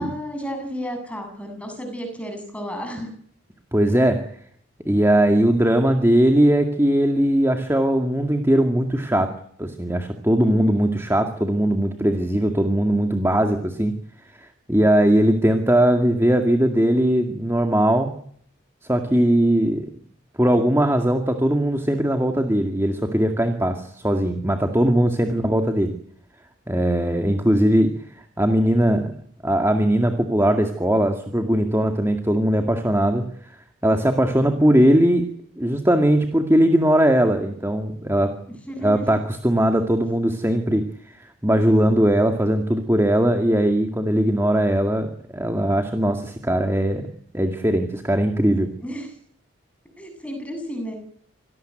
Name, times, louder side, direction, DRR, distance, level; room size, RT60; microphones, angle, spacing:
voice 1, 0.0-3.1 10.4-10.9 25.3-25.8 38.5-39.1 48.8-49.1 50.0-50.9, equal, 5° left, 5 dB, 7.8 m, -33 dB
voice 2, 3.7-4.3 4.9-9.3 9.6-14.0 14.4-18.1 18.9-19.9 20.4-26.0 26.7-28.0 28.4-29.1 29.4-33.2 33.8-35.3 35.6-38.4 38.8-40.9 41.2-47.1 47.3-48.7, right 1 dB, 15° right, 5 dB, 2.1 m, -19 dB
26.5 x 18.5 x 9.2 m, 0.62 s
head